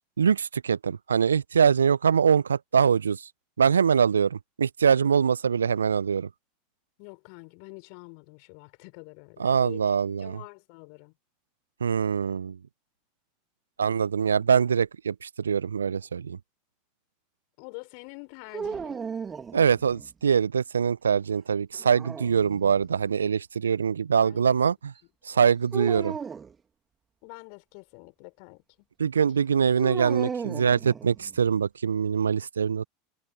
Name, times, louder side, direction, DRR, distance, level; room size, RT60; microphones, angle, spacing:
voice 1, 0.2-3.3 3.6-6.3 9.4-10.4 11.8-12.6 13.8-16.4 19.5-24.9 25.3-26.2 29.0-32.8, right 7 dB, 75° right, 1.1 m, -23 dB
voice 2, 7.0-9.8 10.2-11.1 17.6-19.0 24.2-24.6 25.3-25.5 27.2-28.9, left 40 dB or more, 50° left, 5.7 m, -46 dB
sound 1, 18.5-20.1 21.7-22.9 25.7-26.5 29.7-31.4, right 6 dB, 20° right, 3.0 m, -36 dB
figure-of-eight pair, 80°, 0 cm